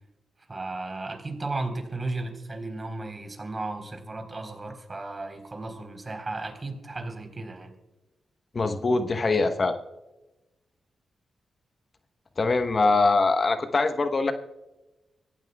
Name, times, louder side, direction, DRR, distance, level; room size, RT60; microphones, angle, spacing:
voice 1, 0.5-7.7, right 2 dB, 35° right, 4 dB, 3.9 m, -35 dB
voice 2, 8.5-9.8 12.4-14.3, left 3 dB, 50° left, 9 dB, 1.0 m, -23 dB
24.5 x 15.0 x 2.3 m, 1.0 s
supercardioid pair, 40°, 0 cm